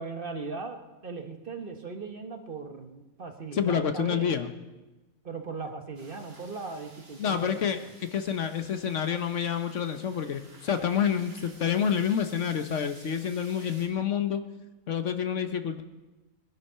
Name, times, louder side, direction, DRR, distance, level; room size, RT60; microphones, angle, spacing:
voice 1, 0.0-4.3 5.2-7.9, right 4 dB, 40° right, 5 dB, 1.3 m, -38 dB
voice 2, 3.5-4.5 7.2-7.8 8.1-14.4 14.9-15.8, left 8 dB, 60° left, 8 dB, 1.1 m, -28 dB
sound 1, 5.9-13.9, right 2 dB, 85° right, 2.9 m, -53 dB
21.0 x 11.0 x 5.6 m, 1.1 s
omnidirectional pair, 1.5 m